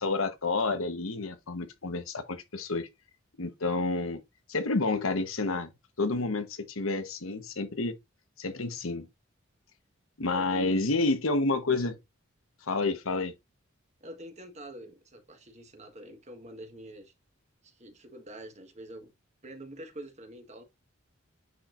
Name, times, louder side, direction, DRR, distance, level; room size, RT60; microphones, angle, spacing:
voice 1, 0.0-2.9 3.4-4.2 4.5-5.7 6.0-8.0 8.4-9.1 10.2-12.0 12.7-13.3, left 3 dB, 85° left, 1.1 m, -29 dB
voice 2, 10.3-10.7 14.0-17.1 17.6-19.1 19.4-20.6, right 1 dB, 35° right, 1.4 m, -46 dB
9.7 x 4.5 x 2.5 m
head